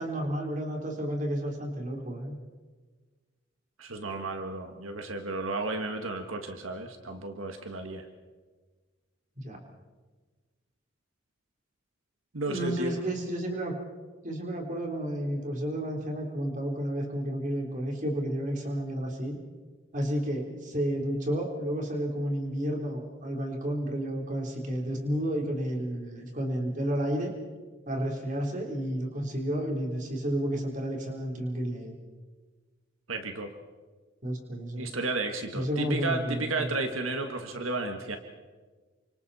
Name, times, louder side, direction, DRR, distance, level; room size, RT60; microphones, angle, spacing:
voice 1, 0.0-2.3 9.4-9.6 12.5-13.8 14.2-19.4 19.9-27.3 27.9-31.9 34.2-34.9 35.5-36.8, equal, 40° right, 1 dB, 3.7 m, -31 dB
voice 2, 3.8-8.1 12.3-13.0 33.1-33.5 34.8-38.2, right 2 dB, 85° right, 5 dB, 1.6 m, -33 dB
29.0 x 25.5 x 4.2 m, 1.4 s
head